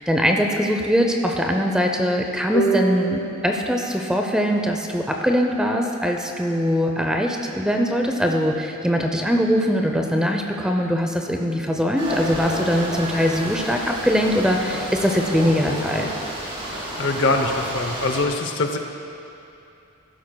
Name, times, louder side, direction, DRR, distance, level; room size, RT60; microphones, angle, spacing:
voice 1, 0.0-16.1, equal, 5° right, 2 dB, 0.6 m, -22 dB
sound 1, 2.5-5.8, right 2 dB, 80° left, 2.4 m, -29 dB
sound 2, 12.0-18.2, equal, 25° right, 2.5 m, -31 dB
voice 2, 17.0-18.8, left 2 dB, 60° left, 5 dB, 0.7 m, -23 dB
15.0 x 12.0 x 2.3 m, 2.7 s
head